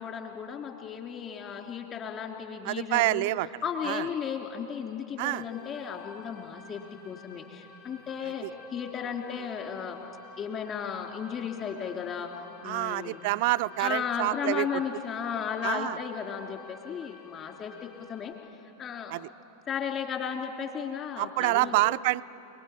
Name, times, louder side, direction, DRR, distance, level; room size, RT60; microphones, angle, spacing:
voice 1, 0.0-3.3 3.6-8.4 8.7-10.0 10.4-12.3 12.6-13.2 13.8-18.3 18.8-19.1 19.7-21.8, left 7 dB, 30° left, 2 dB, 3.3 m, -35 dB
voice 2, 2.7-3.5 3.8-4.0 5.2-5.4 12.6-14.7 15.6-16.0 19.1-19.3 21.2-22.2, right 20 dB, 50° right, 14 dB, 0.5 m, -27 dB
sound 1, 5.3-18.3, left 4 dB, 55° left, 7.4 m, -51 dB
30.0 x 20.0 x 9.0 m, 3.0 s
figure-of-eight pair, 90°, 0 cm